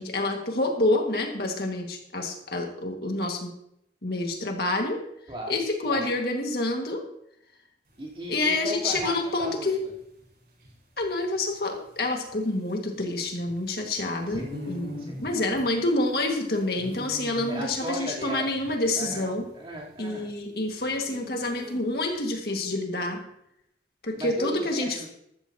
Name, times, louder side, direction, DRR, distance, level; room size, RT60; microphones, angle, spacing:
voice 1, 0.0-3.5 4.0-5.0 5.5-7.0 8.3-9.8 11.0-19.4 20.0-23.2 24.0-25.0, left 2 dB, 60° left, 2 dB, 1.9 m, -28 dB
voice 2, 5.3-5.6 5.8-6.0 8.0-9.9 14.2-15.4 17.5-18.5 19.0-20.3 24.2-25.1, equal, 30° right, -5 dB, 3.5 m, -36 dB
sound 1, 7.9-22.1, left 1 dB, 55° right, 5.1 m, -44 dB
14.0 x 13.5 x 2.9 m, 0.75 s
head